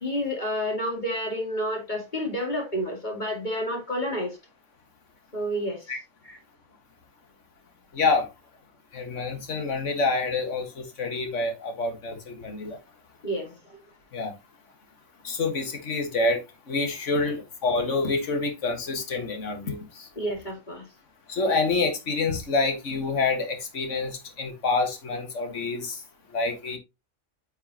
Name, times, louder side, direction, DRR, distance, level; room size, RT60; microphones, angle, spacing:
voice 1, 0.0-4.4 5.3-5.9 6.2-6.4 13.2-13.8 20.2-20.9, equal, 35° left, 2.5 m, -30 dB
voice 2, 7.9-8.3 8.9-12.8 14.1-14.3 15.2-16.4 16.7-20.1 21.3-26.0 26.3-26.8, left 3 dB, 65° left, 2.0 m, -27 dB
9.8 x 5.6 x 2.9 m
omnidirectional pair, 1.3 m